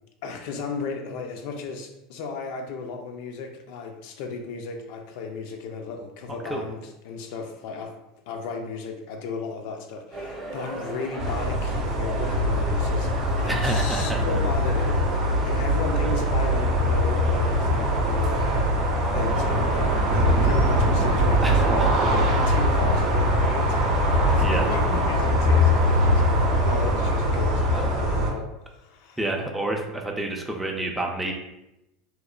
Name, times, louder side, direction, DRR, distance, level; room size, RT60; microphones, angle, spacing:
voice 1, 0.2-8.0 8.3-21.9 22.5-23.8 24.3-26.2 26.5-29.2, left 4 dB, 70° left, 4 dB, 0.4 m, -35 dB
sound 1, 10.1-28.0, right 1 dB, 25° right, 0.7 m, -38 dB
sound 2, 11.2-28.3, equal, 55° right, 0.6 m, -22 dB
voice 2, 13.5-14.4 21.4-21.9 24.4-24.7 27.7-27.9 29.2-31.3, right 1 dB, 5° right, 0 dB, 0.4 m, -29 dB
2.9 x 2.1 x 2.4 m, 0.91 s
supercardioid pair, 120°, 0 cm